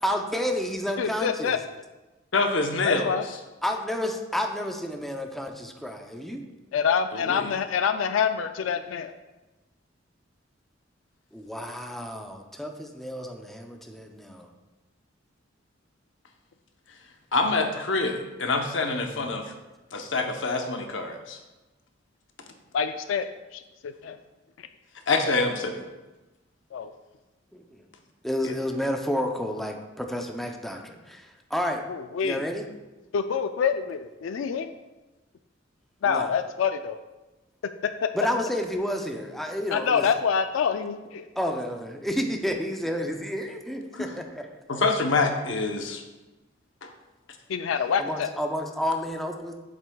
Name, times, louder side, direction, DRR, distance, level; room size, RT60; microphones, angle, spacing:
voice 1, 0.0-1.6 3.6-6.4 11.3-14.5 19.1-19.4 27.5-27.8 28.2-31.8 32.2-32.7 36.0-36.3 38.1-40.0 41.4-44.5 48.0-49.5, equal, ahead, 2 dB, 0.5 m, -30 dB
voice 2, 1.0-1.6 2.8-3.2 6.7-9.1 22.7-23.3 23.5-24.2 24.6-24.7 26.7-26.9 31.9-32.4 33.1-34.7 36.0-37.0 38.0-38.1 39.7-41.3 47.5-48.3, left 6 dB, 90° left, 9 dB, 0.3 m, -26 dB
voice 3, 2.3-3.2 7.1-7.5 17.3-19.5 19.9-21.4 25.1-25.8 28.4-28.5 43.9-44.0 44.7-46.0 46.8-46.9, left 3 dB, 70° left, 4 dB, 0.8 m, -26 dB
8.0 x 7.4 x 2.3 m, 1.1 s
head